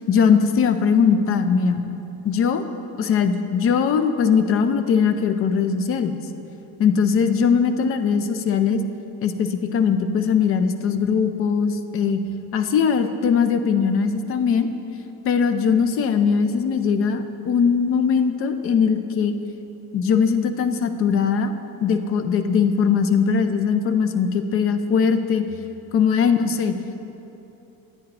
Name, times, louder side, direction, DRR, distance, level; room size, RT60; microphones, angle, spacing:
voice 1, 0.1-1.9 2.2-2.6 3.0-6.2 6.8-8.8 9.2-12.2 12.5-14.7 15.2-19.3 19.9-21.5 21.8-25.4 25.9-26.7, left 6 dB, 35° left, 9 dB, 0.4 m, -20 dB
10.0 x 8.9 x 2.9 m, 2.9 s
cardioid pair, 135°, 38 cm